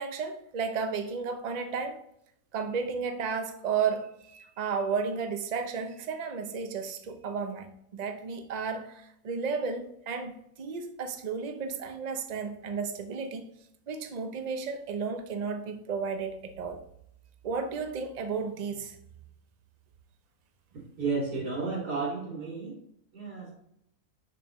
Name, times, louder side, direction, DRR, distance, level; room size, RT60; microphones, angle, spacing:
voice 1, 0.0-2.0 2.5-13.5 13.9-16.8 17.4-19.0, right 5 dB, 45° right, 0.5 m, -33 dB
voice 2, 21.0-22.8 23.1-23.5, right 4 dB, 80° right, 3.2 m, -32 dB
6.9 x 5.8 x 3.1 m
omnidirectional pair, 1.7 m